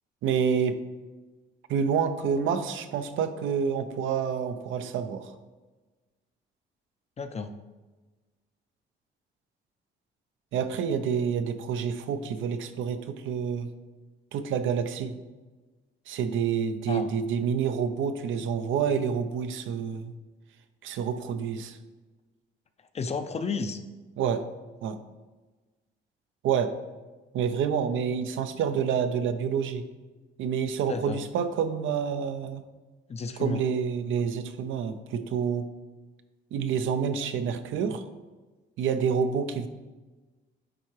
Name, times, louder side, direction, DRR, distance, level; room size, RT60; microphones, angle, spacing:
voice 1, 0.2-0.8 1.7-5.3 10.5-13.7 14.3-15.1 16.1-20.1 20.8-21.8 24.2-24.4 24.8-25.0 26.4-26.7 27.3-29.8 30.4-32.6 33.4-35.7 36.5-38.0 38.8-39.7, right 7 dB, 80° right, 9 dB, 0.6 m, -28 dB
voice 2, 7.2-7.5 16.9-17.1 22.9-23.8 30.9-31.2 33.1-33.6, left 4 dB, 35° left, 9 dB, 0.5 m, -32 dB
9.8 x 3.6 x 3.2 m, 1.2 s
cardioid pair, 90°, 20 cm